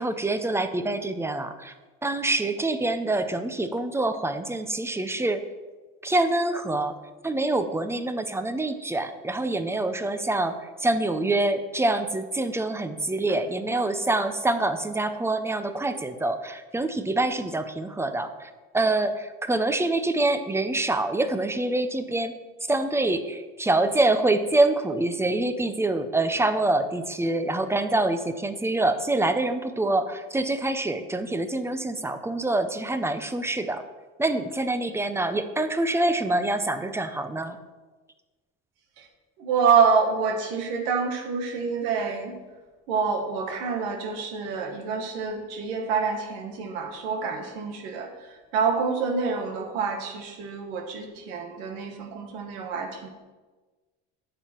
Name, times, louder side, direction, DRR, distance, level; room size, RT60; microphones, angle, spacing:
voice 1, 0.0-1.7 2.0-5.4 6.0-6.9 7.2-22.4 22.7-33.8 34.2-37.6, right 2 dB, 10° right, 10 dB, 0.6 m, -26 dB
voice 2, 39.4-42.3 42.9-53.1, right 5 dB, 90° right, 3 dB, 1.5 m, -27 dB
10.5 x 7.2 x 4.5 m, 1.3 s
cardioid pair, 115°, 31 cm